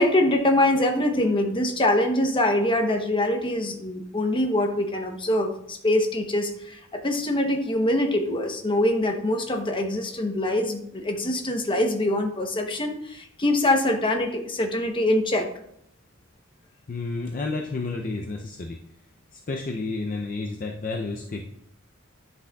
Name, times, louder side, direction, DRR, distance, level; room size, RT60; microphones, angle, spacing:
voice 1, 0.0-15.5, left 1 dB, 25° left, 4 dB, 0.8 m, -24 dB
voice 2, 16.9-18.8 19.3-21.5, left 3 dB, 40° left, 2 dB, 0.5 m, -31 dB
10.0 x 6.0 x 2.3 m, 0.72 s
head